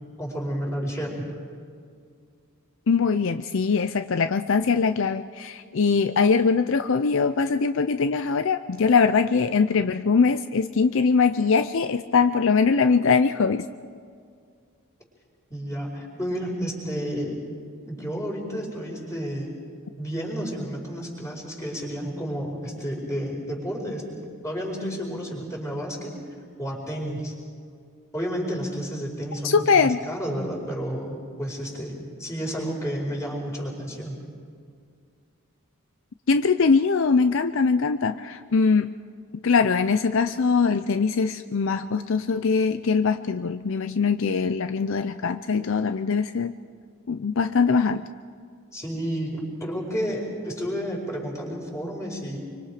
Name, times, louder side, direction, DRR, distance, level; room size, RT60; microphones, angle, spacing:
voice 1, 0.2-1.2 15.5-17.4 17.9-19.6 20.0-26.1 26.6-27.3 28.1-34.2 48.7-52.4, equal, 15° left, -1 dB, 5.0 m, -31 dB
voice 2, 2.9-13.6 29.4-30.0 36.3-38.9 39.4-46.5 47.1-48.1, left 5 dB, 60° left, 10 dB, 0.5 m, -22 dB
26.0 x 24.5 x 5.0 m, 2.2 s
head